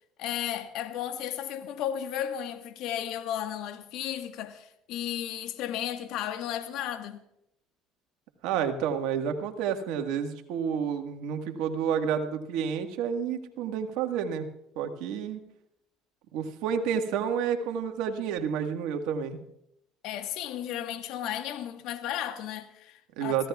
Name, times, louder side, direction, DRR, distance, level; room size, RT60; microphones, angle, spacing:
voice 1, 0.2-7.2 20.0-23.5, left 10 dB, 70° left, 1.5 m, -34 dB
voice 2, 8.4-14.5 14.7-15.4 16.3-19.4 23.2-23.5, right 7 dB, 75° right, 1.6 m, -30 dB
26.0 x 15.5 x 2.4 m
supercardioid pair, 80°, 0 cm